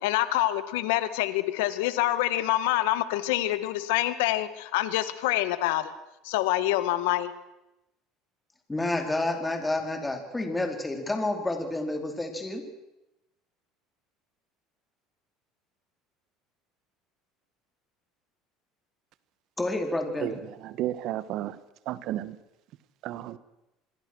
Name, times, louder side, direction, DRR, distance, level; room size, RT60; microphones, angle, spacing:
voice 1, 0.0-5.9 6.2-7.3, left 15 dB, 85° left, 13 dB, 1.7 m, -26 dB
voice 2, 8.7-12.6 19.6-20.4, left 2 dB, 10° left, 4 dB, 4.3 m, -29 dB
voice 3, 20.6-21.6 21.9-22.3 23.0-23.4, right 13 dB, 60° right, 15 dB, 1.5 m, -32 dB
26.5 x 21.0 x 6.4 m, 0.94 s
supercardioid pair, 110°, 0 cm